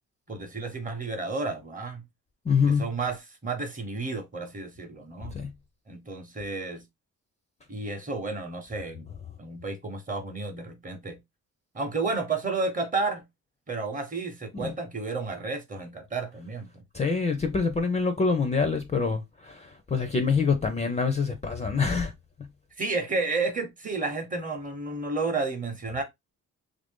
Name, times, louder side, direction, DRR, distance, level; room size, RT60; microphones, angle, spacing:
voice 1, 0.3-2.0 2.7-5.3 5.9-6.8 7.7-9.1 9.4-11.2 11.7-13.3 13.7-16.8 22.8-26.0, right 3 dB, 25° right, 0.8 m, -31 dB
voice 2, 2.5-2.8 5.3-5.5 14.6-14.7 16.9-22.1, left 5 dB, 20° left, 0.4 m, -25 dB
3.3 x 2.6 x 3.5 m
wide cardioid pair, 170°, 31 cm